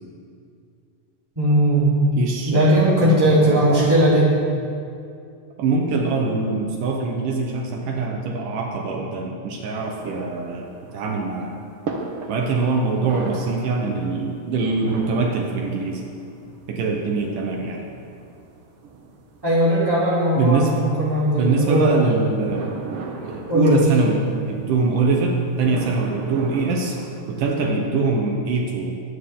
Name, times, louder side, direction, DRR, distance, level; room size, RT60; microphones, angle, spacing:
voice 1, 1.3-1.9 2.5-4.3 19.4-20.7 21.0-21.9 23.5-23.8, equal, 5° right, -8 dB, 3.3 m, -18 dB
voice 2, 2.2-3.9 5.6-10.7 10.9-11.6 12.3-16.0 16.7-17.8 20.4-20.8 21.4-22.7 23.2-27.0 27.3-28.9, right 4 dB, 75° right, 1 dB, 2.6 m, -23 dB
sound 1, 9.8-27.4, right 4 dB, 60° right, 1.7 m, -37 dB
21.0 x 9.4 x 3.8 m, 2.4 s
omnidirectional pair, 3.8 m